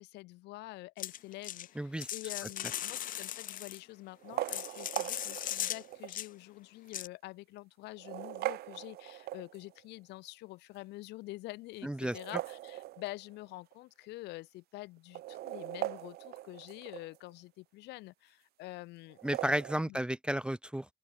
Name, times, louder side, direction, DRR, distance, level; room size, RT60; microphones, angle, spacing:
voice 1, 0.0-19.2 19.9-20.0, left 19 dB, 85° left, 2.0 m, -47 dB
sound 1, 1.0-1.7 2.0-3.8 4.3-5.8 6.1-6.3 6.9-7.1, left 11 dB, 55° left, 0.8 m, -38 dB
voice 2, 1.8-2.1 11.8-12.2 19.2-20.9, right 1 dB, 5° right, 0.6 m, -32 dB
sound 2, 2.5-2.9 4.1-6.2 6.9-7.0 7.8-9.8 12.0-13.4 13.7-13.8 14.0-14.1 15.0-17.2 19.1-19.8, right 15 dB, 70° right, 0.7 m, -40 dB
open air
cardioid pair, 110°, 17 cm